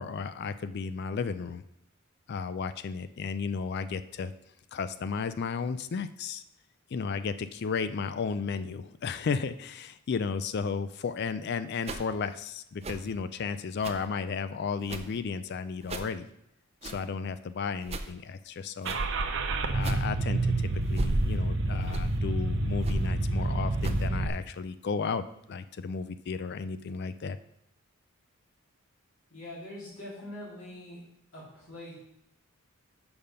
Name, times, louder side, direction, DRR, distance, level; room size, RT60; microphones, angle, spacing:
voice 1, 0.0-1.6 2.3-4.3 4.7-6.4 6.9-16.3 16.8-19.0 19.7-20.4 20.9-27.4, left 5 dB, 50° left, 13 dB, 0.3 m, -33 dB
sound 1, 11.8-12.1 12.8-13.1 13.8-14.1 14.8-15.2 15.8-16.1 16.8-17.1 17.8-18.1 18.8-19.1 19.8-20.1 20.8-21.4 21.8-22.2 22.8-23.1 23.8-24.1, right 2 dB, 30° right, 0.5 m, -34 dB
Car / Engine starting, 18.8-24.3, right 2 dB, 60° right, 0.7 m, -28 dB
voice 2, 29.3-31.0 31.3-31.9, left 1 dB, 70° left, -6 dB, 3.0 m, -43 dB
6.9 x 5.3 x 5.5 m, 0.79 s
head